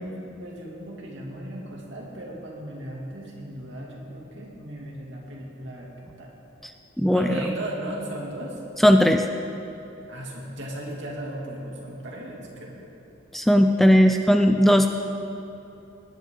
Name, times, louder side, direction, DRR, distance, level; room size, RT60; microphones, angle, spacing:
voice 1, 0.1-5.9 6.2-6.3 7.1-8.6 10.1-12.9, right 1 dB, 65° right, -2 dB, 2.7 m, -36 dB
voice 2, 7.0-7.3 8.8-9.3 13.3-14.9, equal, ahead, 5 dB, 0.4 m, -17 dB
20.0 x 11.0 x 3.9 m, 2.9 s
head